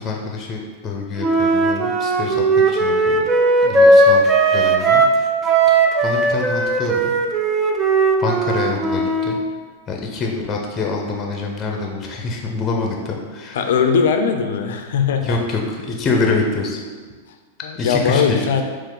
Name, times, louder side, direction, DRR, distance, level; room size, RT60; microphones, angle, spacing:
voice 1, 0.0-3.2 3.6-5.0 5.7-7.1 8.2-9.4 9.9-13.7 15.2-16.8 17.8-18.4, left 3 dB, 30° left, 1 dB, 0.6 m, -25 dB
Wind instrument woodwind instrument, 1.2-5.2 5.4-9.4, right 2 dB, 20° right, 0.4 m, -17 dB
voice 2, 13.5-15.4 17.6-18.6, left 6 dB, 70° left, 5 dB, 0.4 m, -19 dB
4.4 x 2.5 x 3.8 m, 1.5 s
hypercardioid pair, 105°, 0 cm